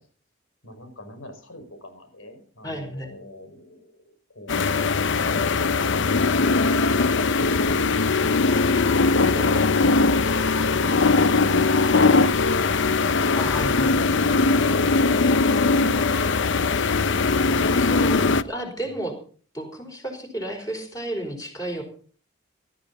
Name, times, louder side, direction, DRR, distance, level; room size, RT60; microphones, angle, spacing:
voice 1, 0.6-5.0, left 1 dB, 90° left, 6 dB, 5.7 m, -45 dB
voice 2, 2.6-3.1 9.3-9.5 13.3-13.9 17.8-19.1 19.5-21.8, right 1 dB, 20° left, 3 dB, 4.5 m, -32 dB
sound 1, 4.5-18.4, left 3 dB, 65° left, 0.7 m, -20 dB
18.5 x 13.5 x 4.2 m, 0.43 s
head